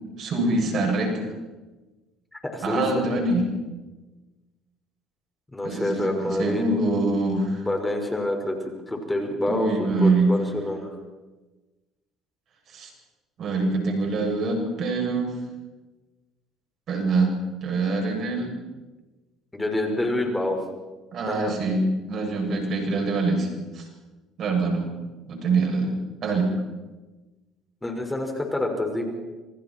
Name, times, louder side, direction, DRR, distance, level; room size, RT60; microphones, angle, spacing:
voice 1, 0.2-1.2 2.6-3.5 5.6-7.7 9.5-10.3 12.7-12.9 13.4-15.3 16.9-17.3 17.6-18.5 21.1-21.8 22.1-23.5 23.7-23.9 24.4-24.9 25.3-25.9 26.2-26.5, right 3 dB, 55° right, 1 dB, 7.7 m, -24 dB
voice 2, 2.3-3.2 5.5-6.6 7.7-11.0 19.5-20.6 21.3-21.6 27.8-29.1, left 1 dB, 15° left, 3 dB, 5.4 m, -27 dB
27.5 x 25.5 x 4.6 m, 1.2 s
supercardioid pair, 70°, 0 cm